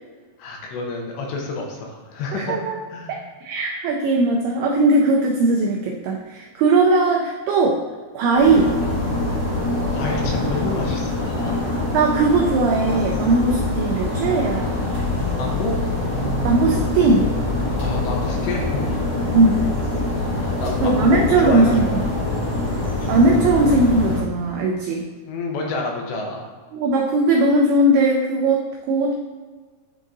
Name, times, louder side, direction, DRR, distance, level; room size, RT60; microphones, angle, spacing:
voice 1, 0.4-2.6 2.9-3.2 9.9-11.6 15.4-15.8 17.8-19.0 20.3-22.2 25.2-26.5, left 3 dB, 80° left, 0 dB, 2.9 m, -29 dB
voice 2, 2.3-2.8 3.1-7.8 8.1-8.7 11.9-14.8 16.4-17.3 19.3-19.5 20.8-21.9 23.1-25.1 26.7-29.1, right 2 dB, 90° right, 0 dB, 2.2 m, -19 dB
sound 1, 8.4-24.2, left 2 dB, 50° left, 1.2 m, -24 dB
10.5 x 3.6 x 2.6 m, 1.5 s
omnidirectional pair, 5.2 m